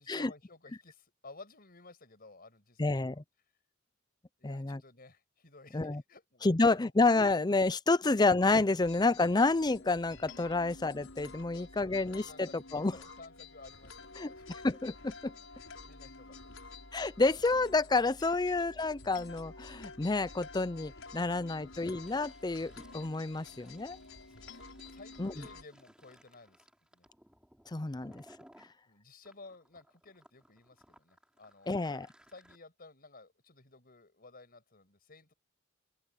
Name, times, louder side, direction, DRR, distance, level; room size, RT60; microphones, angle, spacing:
voice 1, 0.0-2.9 4.4-6.9 8.0-8.1 10.6-10.8 11.5-14.6 15.3-15.5 15.8-16.8 18.5-18.6 24.4-24.5 24.9-26.7 26.9-27.1 27.9-28.2 28.9-31.8 32.3-35.3, left 3 dB, 45° left, 6.3 m, -55 dB
voice 2, 2.8-3.2 4.4-4.8 5.7-6.0 6.4-13.0 14.2-15.3 16.9-24.0 25.2-25.5 27.7-28.2 31.7-32.1, left 3 dB, 20° left, 0.5 m, -29 dB
sound 1, 8.8-25.6, left 3 dB, 75° left, 7.1 m, -50 dB
Fill (with liquid), 22.0-28.7 29.2-32.6, equal, 5° right, 4.6 m, -62 dB
open air
head